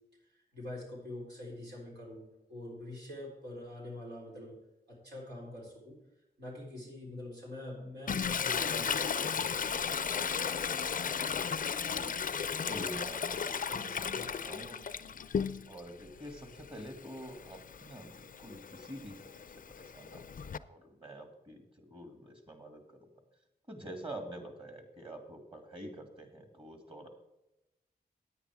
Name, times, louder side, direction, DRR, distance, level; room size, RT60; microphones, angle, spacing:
voice 1, 0.2-4.6 4.9-6.0 6.4-9.0 9.3-9.7 13.7-14.4, left 1 dB, 85° right, -4 dB, 3.9 m, -45 dB
Toilet flush, 8.1-15.9 16.3-20.6, left 6 dB, 55° left, 0.5 m, -35 dB
voice 2, 11.8-14.8 15.7-20.4 20.6-23.1 23.7-27.1, right 1 dB, 35° right, 5 dB, 2.3 m, -47 dB
9.8 x 8.9 x 4.8 m, 0.94 s
cardioid pair, 70°, 17 cm